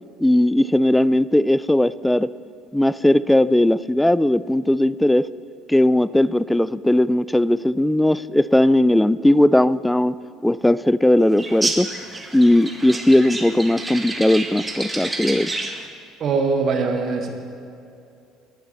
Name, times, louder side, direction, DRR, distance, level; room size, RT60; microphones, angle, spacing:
voice 1, 0.2-2.3 2.7-5.3 5.7-10.1 10.4-11.9 12.3-15.8, left 1 dB, 5° left, 19 dB, 0.3 m, -18 dB
sound 1, 11.4-15.9, right 2 dB, 15° right, 1.4 m, -29 dB
voice 2, 16.2-17.3, right 4 dB, 50° right, 3 dB, 1.5 m, -21 dB
19.0 x 6.8 x 4.2 m, 2.5 s
hypercardioid pair, 65°, 0 cm